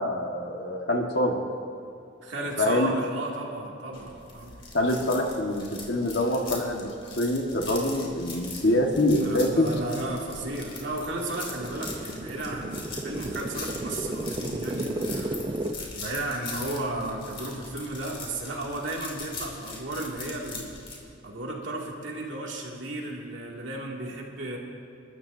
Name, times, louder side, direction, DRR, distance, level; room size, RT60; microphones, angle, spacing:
voice 1, 0.0-1.4 2.6-2.9 4.7-6.9 7.2-9.8, left 1 dB, 60° left, 1 dB, 1.7 m, -25 dB
voice 2, 2.2-4.6 9.2-15.6 16.0-20.7 21.2-24.6, right 2 dB, 75° right, -2 dB, 2.5 m, -34 dB
sound 1, 3.9-21.0, left 3 dB, 30° left, 2.7 m, -41 dB
sound 2, 9.2-9.3 9.8-15.7, right 1 dB, 25° right, 0.7 m, -34 dB
29.5 x 13.0 x 2.8 m, 2.6 s
head